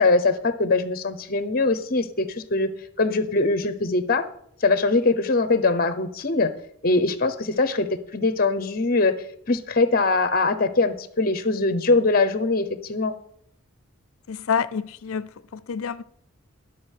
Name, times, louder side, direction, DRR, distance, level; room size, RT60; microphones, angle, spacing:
voice 1, 0.0-2.7 3.0-4.3 4.6-6.5 6.8-7.9 8.1-9.2 9.5-13.1, left 3 dB, 40° left, 0.7 m, -22 dB
voice 2, 14.3-16.0, left 6 dB, 70° left, 0.5 m, -28 dB
11.0 x 6.2 x 6.4 m
head